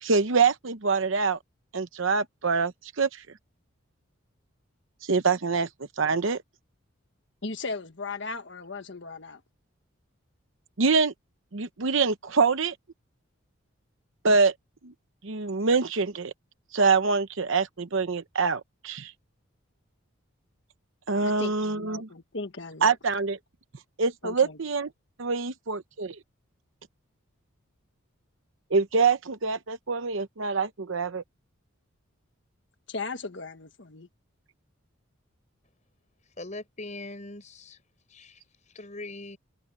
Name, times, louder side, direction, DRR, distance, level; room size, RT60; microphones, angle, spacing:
voice 1, 0.0-1.4 1.7-3.2 5.0-5.7 6.0-6.4 10.8-11.1 11.5-12.7 14.2-14.5 14.8-14.9 15.2-16.3 16.7-19.1 21.1-22.1 22.8-23.4 24.0-24.9 25.2-26.2 28.7-31.2, right 4 dB, 65° right, 0.8 m, -25 dB
voice 2, 7.4-9.4 21.2-22.9 24.2-24.6 32.9-34.1, left 3 dB, 55° left, 1.5 m, -37 dB
voice 3, 36.4-37.8 38.1-39.4, left 2 dB, 35° left, 5.2 m, -41 dB
open air
head